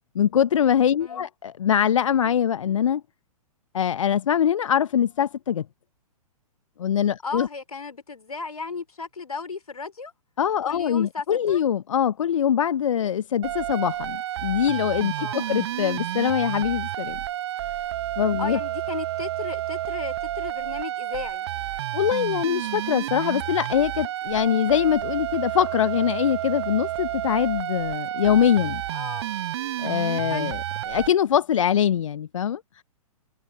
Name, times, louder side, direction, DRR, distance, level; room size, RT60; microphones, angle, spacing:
voice 1, 0.1-3.0 3.7-5.6 6.8-7.5 10.4-17.2 18.2-18.6 21.9-28.8 29.8-30.6 30.9-32.8, left 9 dB, 60° left, 0.8 m, -23 dB
voice 2, 7.2-10.1 10.6-11.6 15.2-15.5 18.4-21.5 28.9-29.3 30.3-30.5, left 4 dB, 75° left, 3.1 m, -35 dB
sound 1, 13.4-31.1, right 13 dB, 45° right, 0.9 m, -30 dB
figure-of-eight pair, 115°, 19 cm